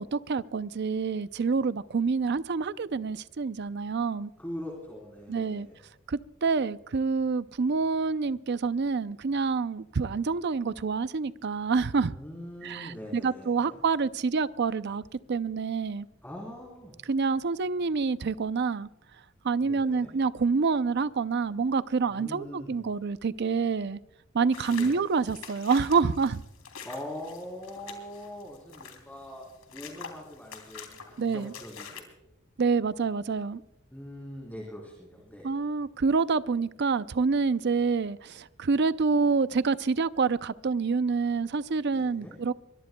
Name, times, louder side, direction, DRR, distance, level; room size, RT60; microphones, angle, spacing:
voice 1, 0.0-4.3 5.3-5.7 6.1-12.1 12.6-15.0 15.3-16.1 17.1-18.9 19.4-24.0 24.3-26.4 31.2-31.5 32.6-33.6 35.4-42.5, right 4 dB, 55° right, 0.5 m, -27 dB
voice 2, 4.4-5.8 12.1-13.8 16.2-17.0 19.6-20.1 22.1-22.8 24.7-25.0 26.8-29.4 29.7-32.1 33.9-35.5 41.9-42.4, left 1 dB, 10° left, 3.6 m, -42 dB
sound 1, 24.5-32.0, left 6 dB, 85° left, 3.1 m, -46 dB
23.5 x 21.5 x 2.3 m
head